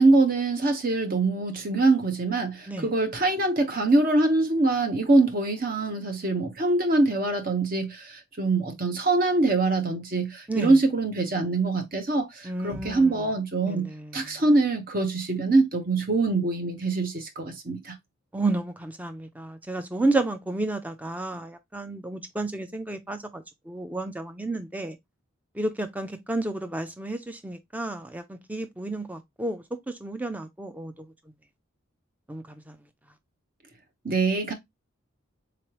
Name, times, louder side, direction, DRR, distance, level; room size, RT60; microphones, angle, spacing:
voice 1, 0.0-18.0 34.0-34.5, right 2 dB, 40° right, 0.8 m, -24 dB
voice 2, 12.4-13.1 13.7-14.1 18.3-25.0 25.6-29.6 30.0-30.9 32.3-32.4, right 2 dB, 5° right, 0.4 m, -31 dB
3.8 x 3.1 x 2.9 m
head